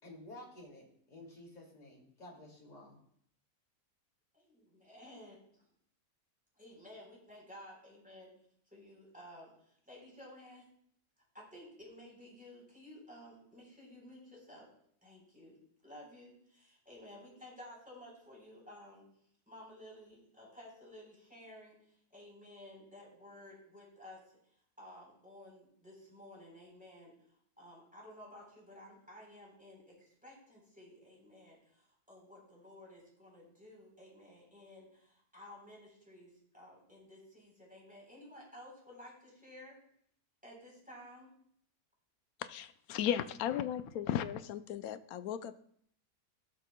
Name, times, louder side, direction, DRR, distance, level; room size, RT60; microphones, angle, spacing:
voice 1, 0.0-3.0, left 1 dB, 30° left, -3 dB, 2.6 m, -52 dB
voice 2, 4.3-5.7 6.6-8.3 8.7-9.5 9.9-10.6 11.3-14.7 15.0-15.6 15.8-19.1 19.5-24.4 24.8-39.8 40.4-41.3, left 1 dB, 5° right, -3 dB, 3.7 m, -54 dB
voice 3, 42.4-45.5, left 10 dB, 75° left, 12 dB, 1.0 m, -36 dB
16.0 x 7.4 x 2.2 m, 0.66 s
omnidirectional pair, 1.6 m